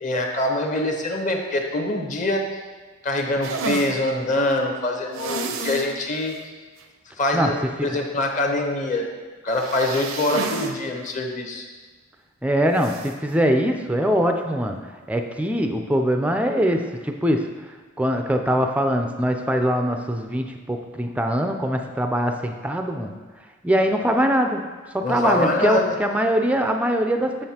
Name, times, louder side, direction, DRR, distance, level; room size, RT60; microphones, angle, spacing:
voice 1, 0.0-2.6 3.0-6.4 7.2-7.6 7.8-9.0 9.4-11.7 25.0-25.9, left 1 dB, 40° left, 2 dB, 0.8 m, -24 dB
sound 1, 3.4-3.9 5.1-5.9 6.3-6.4 6.8-6.9 9.5-10.7 11.1-11.2 12.8-13.1, right 4 dB, 85° right, 0.6 m, -30 dB
voice 2, 12.4-14.8 15.1-17.5 18.0-23.2 23.6-24.7 24.9-27.4, equal, 5° right, 4 dB, 0.3 m, -22 dB
7.6 x 6.8 x 2.8 m, 1.4 s
head